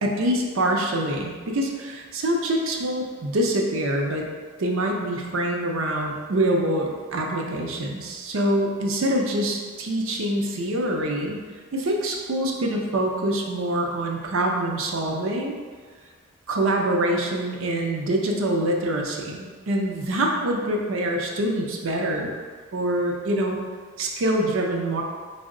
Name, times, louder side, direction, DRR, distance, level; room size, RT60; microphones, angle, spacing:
voice 1, 0.0-4.3 4.6-11.4 11.7-15.6 16.5-22.3 22.7-23.6 24.0-25.0, right 1 dB, 65° right, 0 dB, 0.5 m, -25 dB
4.4 x 2.1 x 3.6 m, 1.6 s
head